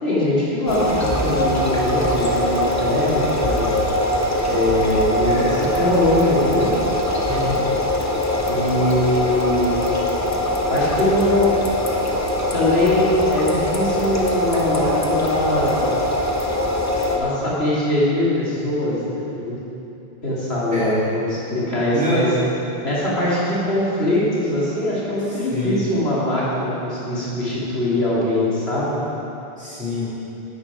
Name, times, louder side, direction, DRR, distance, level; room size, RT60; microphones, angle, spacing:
voice 1, 0.0-3.8 4.4-5.5 5.7-6.7 8.5-9.8 10.7-11.5 12.5-15.8 17.1-19.6 20.2-22.3 22.8-28.9, left 1 dB, 85° left, -8 dB, 2.8 m, -22 dB
sound 1, 0.7-17.2, left 1 dB, 20° left, 0.8 m, -22 dB
voice 2, 5.2-5.6 7.3-7.6 20.7-21.0 21.9-22.3 25.5-25.8 29.6-30.1, left 1 dB, 5° right, -10 dB, 2.6 m, -25 dB
10.0 x 8.1 x 4.9 m, 2.9 s
omnidirectional pair, 1.0 m